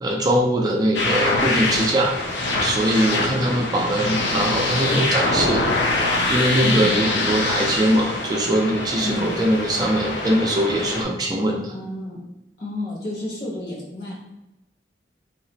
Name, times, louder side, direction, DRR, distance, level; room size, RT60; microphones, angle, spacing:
voice 1, 0.0-2.2 2.6-5.6 6.3-11.7, right 1 dB, 20° right, 0 dB, 0.3 m, -21 dB
sound 1, 0.9-11.0, left 2 dB, 85° left, 0.5 m, -24 dB
voice 2, 3.2-3.8 6.6-6.8 9.0-9.3 11.7-12.2 12.6-14.1, left 2 dB, 60° left, -4 dB, 1.0 m, -31 dB
2.4 x 2.0 x 3.9 m, 0.96 s
head